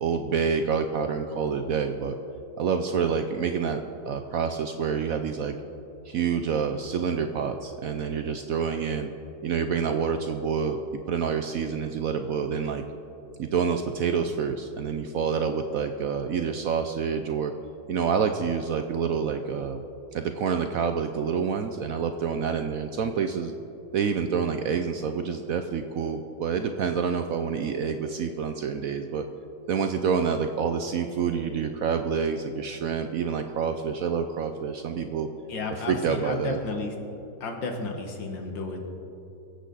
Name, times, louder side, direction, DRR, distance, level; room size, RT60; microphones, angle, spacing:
voice 1, 0.0-2.1 2.6-3.8 4.1-5.5 6.1-9.1 9.4-10.8 11.1-12.8 13.4-17.5 17.9-19.8 20.1-23.5 23.9-29.2 29.7-35.3 35.9-36.6, right 6 dB, 70° right, 6 dB, 0.8 m, -27 dB
voice 2, 35.5-36.9 37.4-38.9, left 3 dB, 85° left, 3 dB, 2.1 m, -32 dB
23.0 x 8.2 x 4.0 m, 2.9 s
omnidirectional pair, 2.0 m